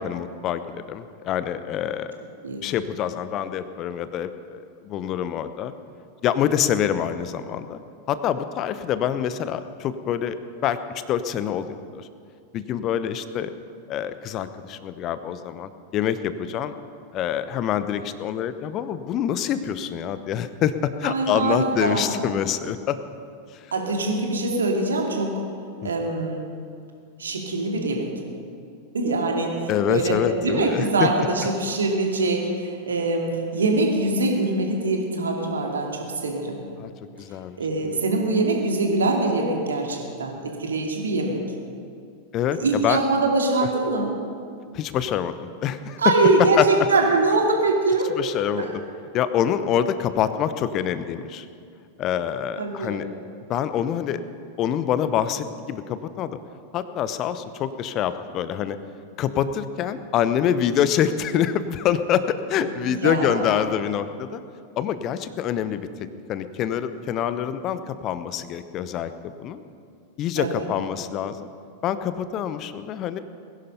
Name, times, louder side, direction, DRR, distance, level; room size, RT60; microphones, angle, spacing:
voice 1, 0.0-2.1 2.6-5.7 6.2-7.8 8.1-10.4 10.6-10.8 11.1-12.1 12.5-13.5 13.9-16.7 17.1-23.0 23.5-23.7 25.8-25.9 29.7-31.1 36.8-36.9 37.2-37.6 42.3-43.0 44.7-46.0 46.6-46.7 48.2-48.7 49.1-51.5 52.0-53.1 53.5-54.2 54.6-56.4 56.7-58.8 59.2-64.4 64.8-65.9 66.3-69.6 70.2-71.5 71.8-73.2, left 9 dB, 35° left, 12 dB, 0.8 m, -26 dB
voice 2, 21.0-22.1 23.7-25.3 25.8-26.4 27.2-28.1 28.9-36.6 37.6-41.4 42.6-44.2 46.0-48.1 48.6-48.7 52.6-53.0 62.8-63.5 70.4-70.7, right 3 dB, 70° right, 1 dB, 2.5 m, -23 dB
21.0 x 11.0 x 5.6 m, 2.3 s
figure-of-eight pair, 90°, 0 cm